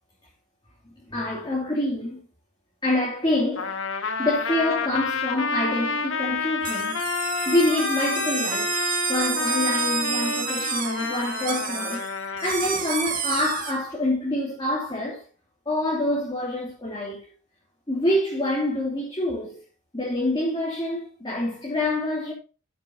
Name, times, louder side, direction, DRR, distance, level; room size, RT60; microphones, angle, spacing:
voice 1, 0.8-2.2 2.8-3.7 4.2-7.0 7.4-15.2 15.6-17.3 17.9-19.6 19.9-22.3, left 1 dB, 25° left, 3.2 m, -26 dB
Trumpet, 3.6-12.6, left 4 dB, 80° left, 1.5 m, -29 dB
sound 1, 6.6-13.7, right 7 dB, 45° right, 2.1 m, -30 dB
12.0 x 8.8 x 2.9 m
head